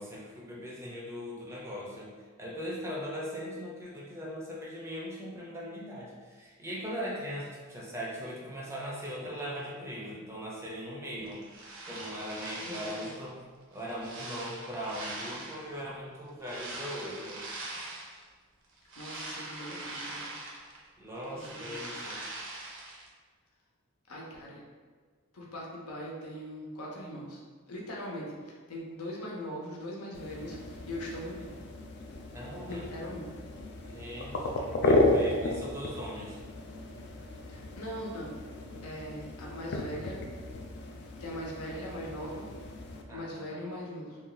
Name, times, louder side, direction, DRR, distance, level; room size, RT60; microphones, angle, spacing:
voice 1, 0.0-2.1 2.4-11.4 11.9-13.4 13.7-17.4 21.0-22.2 32.3-32.8 33.8-36.4 43.1-43.7, equal, 10° right, -5 dB, 0.5 m, -40 dB
sound 1, 11.3-13.3 13.7-15.8 16.4-18.2 18.6-20.9 21.2-23.1, right 2 dB, 60° right, 0.6 m, -42 dB
voice 2, 12.6-13.1 19.0-20.3 21.3-21.8 24.1-24.6 25.3-27.4 27.7-31.5 32.7-33.3 37.5-38.3 38.8-40.3 41.2-42.5 43.1-44.2, equal, 90° left, -3 dB, 0.7 m, -40 dB
sound 2, 30.1-43.0, left 2 dB, 50° left, 0.3 m, -33 dB
2.6 x 2.3 x 3.8 m, 1.5 s
head